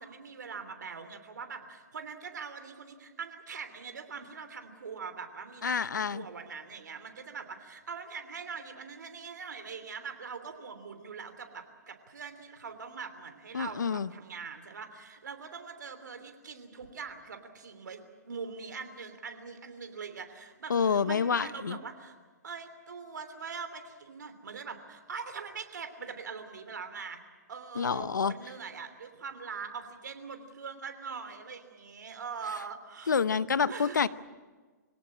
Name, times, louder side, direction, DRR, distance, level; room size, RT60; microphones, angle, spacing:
voice 1, 0.0-22.2 22.4-27.2 27.5-33.2 33.7-34.1, right 5 dB, 80° right, 8 dB, 3.2 m, -42 dB
voice 2, 5.6-6.2 13.5-14.1 20.7-21.8 27.8-28.3 33.1-34.1, left 6 dB, 90° left, 16 dB, 0.8 m, -28 dB
25.0 x 18.0 x 8.7 m, 1.4 s
hypercardioid pair, 130°, 10 cm